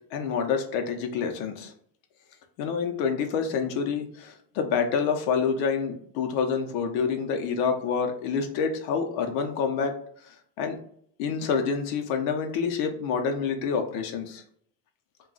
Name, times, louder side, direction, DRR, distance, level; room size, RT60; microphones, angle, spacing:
voice 1, 0.1-1.7 2.6-9.9 10.6-10.8 11.2-14.4, left 6 dB, 70° left, 5 dB, 0.7 m, -27 dB
2.3 x 2.2 x 3.8 m, 0.63 s
cardioid pair, 130°, 49 cm